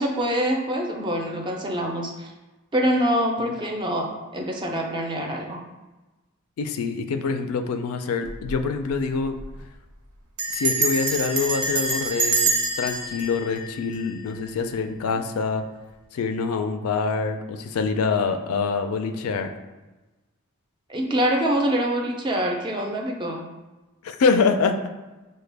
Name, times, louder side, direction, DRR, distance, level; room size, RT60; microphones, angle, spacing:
voice 1, 0.0-2.3 2.7-5.6 20.9-23.4, equal, 20° right, 1 dB, 0.4 m, -25 dB
voice 2, 6.6-9.4 10.5-12.5 12.8-15.6 16.1-19.5 24.0-24.8, left 4 dB, 75° left, 7 dB, 0.3 m, -25 dB
Bell, 8.3-8.6 8.9-9.0 9.2-9.6 10.4-14.5, right 3 dB, 85° right, 0.7 m, -26 dB
4.9 x 2.2 x 3.3 m, 1.1 s
head